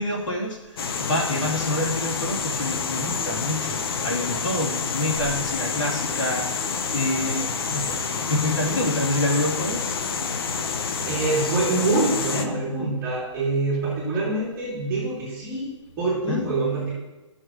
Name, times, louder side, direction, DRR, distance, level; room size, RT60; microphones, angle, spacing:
voice 1, 0.0-10.0 16.3-16.4, left 1 dB, 80° left, -3 dB, 2.9 m, -27 dB
sound 1, 0.8-12.5, left 5 dB, 50° left, 0.9 m, -28 dB
voice 2, 11.0-15.7 16.0-16.9, right 2 dB, 15° right, -9 dB, 3.0 m, -25 dB
14.5 x 6.5 x 3.0 m, 1.1 s
hypercardioid pair, 155°, 16 cm